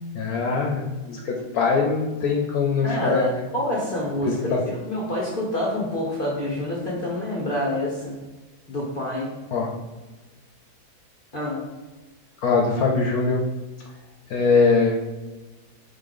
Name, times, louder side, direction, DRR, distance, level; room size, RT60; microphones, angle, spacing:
voice 1, 0.1-3.4 4.2-4.6 9.5-9.7 12.4-13.4 14.3-15.0, left 4 dB, 70° left, 0 dB, 1.0 m, -22 dB
voice 2, 2.8-4.6 4.8-8.1 8.7-9.3 11.3-11.6, left 1 dB, 45° left, -3 dB, 0.7 m, -27 dB
3.9 x 3.7 x 3.4 m, 1.2 s
omnidirectional pair, 1.7 m